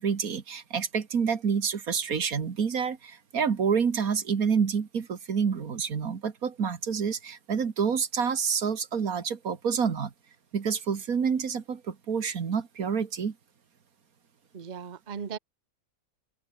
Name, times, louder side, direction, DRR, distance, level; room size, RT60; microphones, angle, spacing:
voice 1, 0.0-10.1 10.5-13.3, right 6 dB, 75° right, 2.1 m, -28 dB
voice 2, 14.5-15.4, right 7 dB, 35° right, 1.0 m, -37 dB
open air
omnidirectional pair, 1.5 m